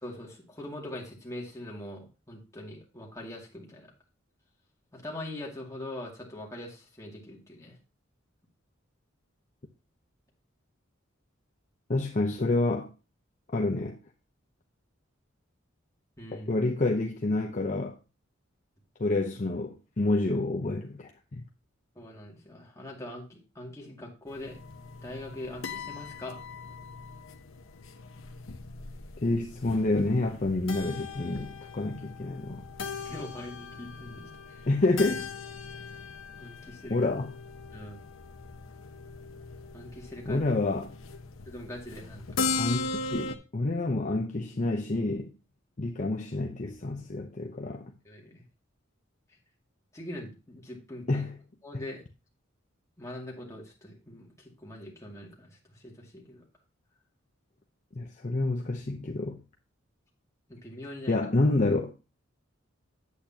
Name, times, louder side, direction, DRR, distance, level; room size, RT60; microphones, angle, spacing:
voice 1, 0.0-3.9 4.9-7.8 16.2-16.5 22.0-24.6 25.0-26.4 33.0-34.7 36.4-37.0 37.7-38.0 39.7-40.4 41.5-42.3 48.0-48.4 49.9-51.3 51.6-52.0 53.0-56.4 60.5-61.2, left 1 dB, 15° left, 2.2 m, -42 dB
voice 2, 11.9-12.9 13.5-14.0 16.5-17.9 19.0-21.4 29.2-32.6 34.7-35.3 36.9-37.3 40.3-40.9 42.6-45.3 45.8-47.9 51.1-51.3 51.7-51.8 57.9-59.4 61.1-61.9, left 2 dB, 40° left, 0.7 m, -28 dB
sound 1, 24.3-43.4, left 4 dB, 85° left, 0.8 m, -39 dB
8.5 x 8.4 x 2.8 m
head